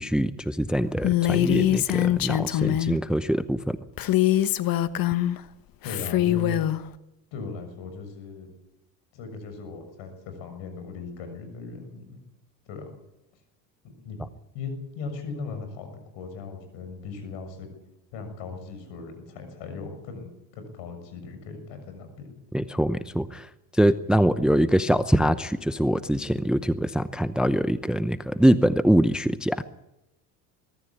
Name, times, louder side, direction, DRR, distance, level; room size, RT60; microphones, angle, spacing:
voice 1, 0.0-3.8 22.5-29.6, equal, ahead, 14 dB, 0.7 m, -23 dB
Female speech woman speaking, 1.0-3.0 4.0-5.4 5.8-6.8, left 13 dB, 45° left, 1.2 m, -23 dB
voice 2, 5.8-6.6 7.3-8.5 9.1-12.2 12.6-12.9 13.8-14.2 14.5-17.7 18.1-22.3, left 4 dB, 65° left, 7 dB, 6.8 m, -38 dB
22.5 x 14.0 x 8.7 m, 0.91 s
hypercardioid pair, 80°, 48 cm